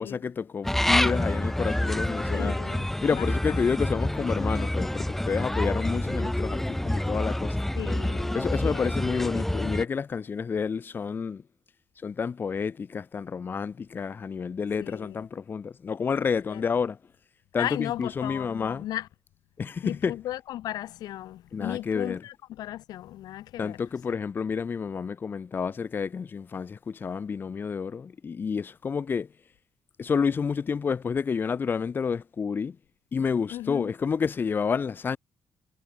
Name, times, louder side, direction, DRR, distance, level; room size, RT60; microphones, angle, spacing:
voice 1, 0.0-2.6 3.0-7.6 8.3-11.4 12.0-17.0 17.5-18.9 19.6-20.2 21.5-22.2 23.6-29.3 30.0-32.8 33.1-35.2, left 6 dB, 30° left, 2.2 m, -29 dB
sound 1, 0.6-9.9, left 1 dB, 5° left, 0.8 m, -27 dB
voice 2, 2.3-2.9 3.2-3.8 7.7-8.9 14.8-15.2 16.5-16.6 17.6-19.1 19.8-23.8 33.5-33.9, left 13 dB, 85° left, 4.1 m, -36 dB
cardioid pair, 155°, 7 cm